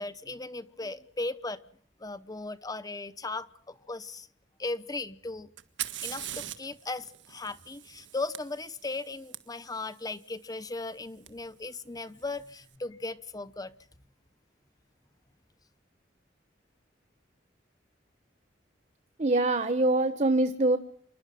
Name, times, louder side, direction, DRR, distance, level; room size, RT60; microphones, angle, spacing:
voice 1, 0.0-1.6 2.0-4.3 4.6-5.5 6.0-13.7, left 3 dB, 20° left, 14 dB, 0.9 m, -37 dB
Fire, 5.6-9.4 11.3-11.4 12.2-12.6, right 13 dB, 80° right, 1.6 m, -41 dB
voice 2, 19.2-20.8, right 2 dB, 40° right, 10 dB, 1.1 m, -24 dB
26.5 x 12.0 x 9.3 m, 0.62 s
head